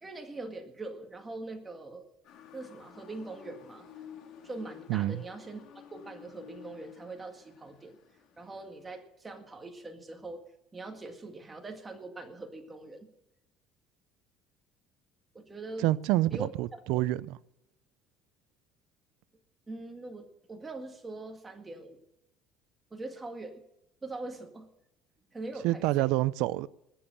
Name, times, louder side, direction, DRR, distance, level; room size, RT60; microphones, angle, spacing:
voice 1, 0.0-2.1 2.5-3.9 4.4-8.0 8.4-10.4 10.7-13.1 15.3-15.9 16.3-17.0 19.7-22.0 22.9-23.6 24.0-24.7 25.3-26.1, right 2 dB, 15° right, 1.9 m, -42 dB
Motor vehicle (road) / Siren, 2.2-9.0, left 9 dB, 60° left, 2.5 m, -52 dB
voice 2, 4.9-5.2 15.8-17.4 25.6-26.7, right 17 dB, 75° right, 0.5 m, -27 dB
20.0 x 7.1 x 6.6 m
cardioid pair, 150°, 0 cm